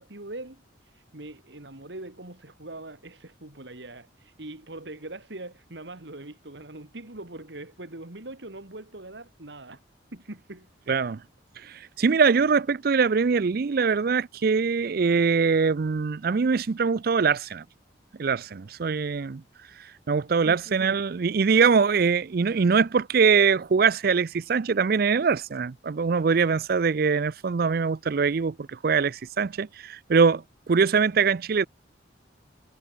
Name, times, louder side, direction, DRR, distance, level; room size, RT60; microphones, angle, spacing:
voice 1, 0.0-9.8 10.1-10.7 20.4-21.0, right 2 dB, 70° right, 2.5 m, -42 dB
voice 2, 10.9-11.2 11.6-17.6 18.2-19.4 20.1-31.7, right 5 dB, 50° right, 0.4 m, -23 dB
head